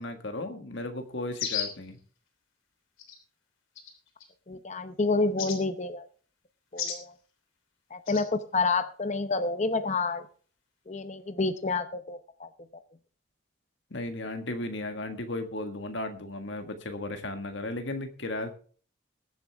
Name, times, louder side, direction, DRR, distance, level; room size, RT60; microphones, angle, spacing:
voice 1, 0.0-2.0 13.9-18.5, left 2 dB, 65° left, 6 dB, 1.7 m, -35 dB
sound 1, 1.4-1.8 3.0-3.2 3.8-4.3 5.4-5.6 6.8-7.0 8.1-8.3, left 7 dB, 85° left, 3.3 m, -33 dB
voice 2, 4.5-6.1 6.7-7.1 7.9-10.3 10.9-12.5, left 3 dB, 35° left, 9 dB, 0.8 m, -29 dB
21.0 x 7.8 x 3.5 m, 0.42 s
head